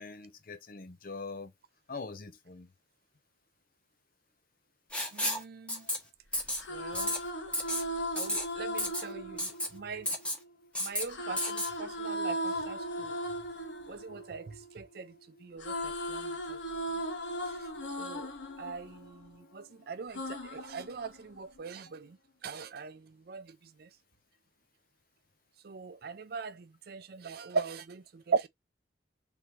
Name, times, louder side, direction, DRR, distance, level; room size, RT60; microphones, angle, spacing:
voice 1, 0.0-1.5 1.9-2.7 5.8-5.9, left 4 dB, 50° left, 0.7 m, -43 dB
Writing, 4.9-5.4 5.7-6.0 6.3-6.6 6.9-7.2 7.5-7.8 8.2-8.4 8.8-9.0 9.4-9.7 10.1-10.4 10.7-11.0 11.4-11.7, left 1 dB, 5° left, 1.3 m, -32 dB
voice 2, 5.1-5.8 6.7-7.1 8.2-10.1 10.8-13.2 13.9-15.1 15.4-16.6 18.0-18.3 18.6-22.2 22.4-23.9 25.6-28.5, right 5 dB, 60° right, 0.5 m, -40 dB
sound 1, 6.4-10.5 11.1-15.1 15.4-19.6 20.1-21.6, equal, 80° left, 1.3 m, -38 dB
3.6 x 2.9 x 4.4 m
head